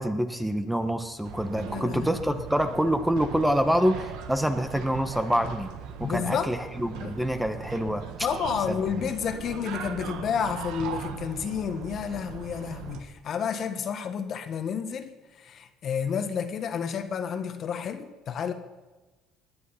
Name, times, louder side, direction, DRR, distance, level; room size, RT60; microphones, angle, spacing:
voice 1, 0.0-5.7 6.0-8.0 8.7-9.1, equal, 5° right, 8 dB, 1.2 m, -26 dB
sound 1, 1.2-13.0, right 7 dB, 80° right, 1.4 m, -39 dB
voice 2, 1.7-2.4 6.0-6.5 7.0-7.2 8.2-18.5, left 7 dB, 50° left, 8 dB, 1.5 m, -31 dB
18.5 x 10.5 x 5.7 m, 1.2 s
supercardioid pair, 95°, 0 cm